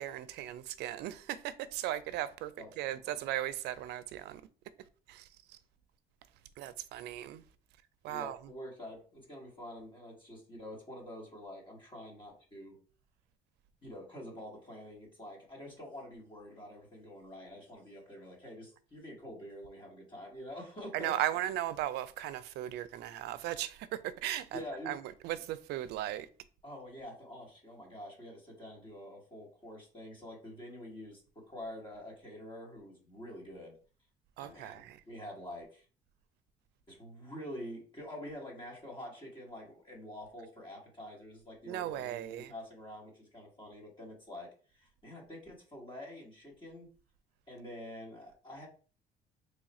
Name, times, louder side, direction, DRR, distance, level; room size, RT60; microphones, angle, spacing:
voice 1, 0.0-4.4 5.1-5.6 6.6-7.4 8.0-8.4 20.9-26.3 34.4-35.0 41.7-42.5, right 13 dB, 80° right, 0.4 m, -37 dB
voice 2, 2.6-3.2 8.1-12.8 13.8-21.1 24.5-24.9 26.6-33.8 34.4-35.8 36.9-46.9 47.5-48.7, left 1 dB, 30° left, 1.3 m, -47 dB
3.1 x 2.4 x 4.1 m
cardioid pair, 110°, 17 cm